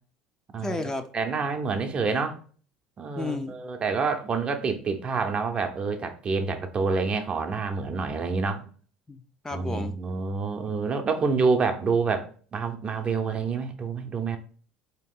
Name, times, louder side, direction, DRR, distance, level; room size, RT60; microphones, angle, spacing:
voice 1, 0.6-1.1 3.2-3.6 9.1-10.0, left 3 dB, 15° left, 0.4 m, -32 dB
voice 2, 1.1-2.4 3.0-8.6 9.5-14.4, right 4 dB, 35° right, 0.7 m, -27 dB
3.7 x 2.9 x 3.7 m
supercardioid pair, 85°, 3 cm